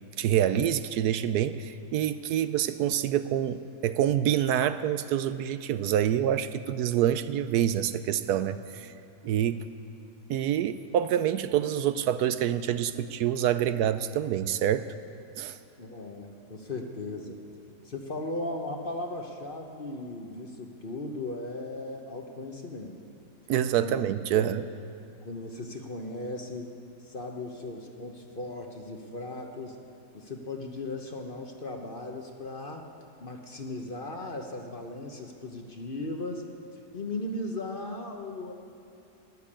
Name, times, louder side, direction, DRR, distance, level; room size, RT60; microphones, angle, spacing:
voice 1, 0.2-8.9 9.2-9.6 10.3-14.8 15.4-15.6 23.5-24.6, right 10 dB, 75° right, 12 dB, 1.1 m, -26 dB
voice 2, 15.8-17.4 17.8-23.0 23.8-24.0 24.3-24.5 25.2-26.7 27.0-29.8 30.1-32.9 33.2-36.5 36.9-38.5, left 2 dB, 35° left, 3 dB, 1.1 m, -37 dB
13.0 x 10.5 x 8.7 m, 2.7 s
omnidirectional pair, 1.7 m